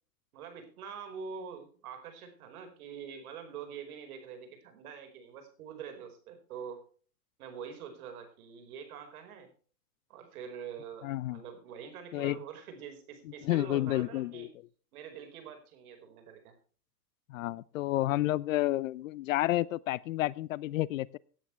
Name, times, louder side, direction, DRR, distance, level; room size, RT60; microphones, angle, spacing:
voice 1, 0.3-6.8 7.4-9.5 10.1-14.5 14.9-16.5, right 7 dB, 60° right, 7 dB, 5.0 m, -45 dB
voice 2, 11.0-11.4 12.1-12.4 13.4-14.5 17.3-21.2, left 16 dB, 55° left, 23 dB, 0.6 m, -30 dB
17.0 x 10.0 x 3.3 m, 0.42 s
hypercardioid pair, 125°, 49 cm